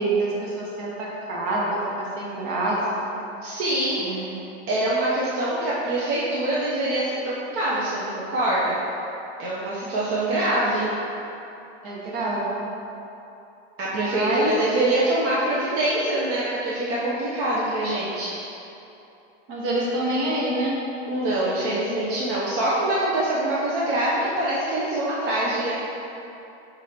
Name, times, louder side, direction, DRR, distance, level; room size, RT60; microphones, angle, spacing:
voice 1, 0.0-2.8 3.1-3.2 4.0-4.3 10.3-10.6 11.8-12.7 13.9-14.5 19.5-20.8, right 2 dB, 55° right, -5 dB, 1.4 m, -27 dB
voice 2, 3.4-4.3 4.7-8.8 9.4-10.9 13.8-18.3 21.1-25.7, right 1 dB, 40° right, -8 dB, 0.8 m, -24 dB
3.9 x 3.0 x 4.3 m, 2.9 s
hypercardioid pair, 110°, 35 cm